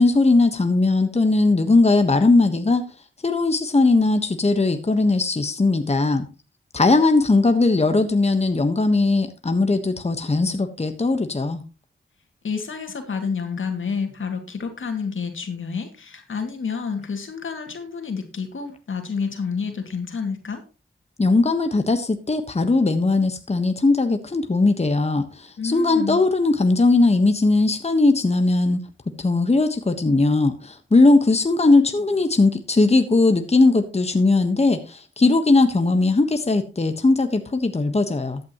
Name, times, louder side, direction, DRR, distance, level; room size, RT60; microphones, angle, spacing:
voice 1, 0.0-2.8 3.2-6.3 6.7-11.6 21.2-38.4, left 3 dB, 30° left, 7 dB, 1.3 m, -19 dB
voice 2, 12.4-20.6 25.6-26.2, left 5 dB, 75° left, 5 dB, 2.4 m, -29 dB
13.5 x 9.4 x 3.0 m, 0.31 s
cardioid pair, 55°, 20 cm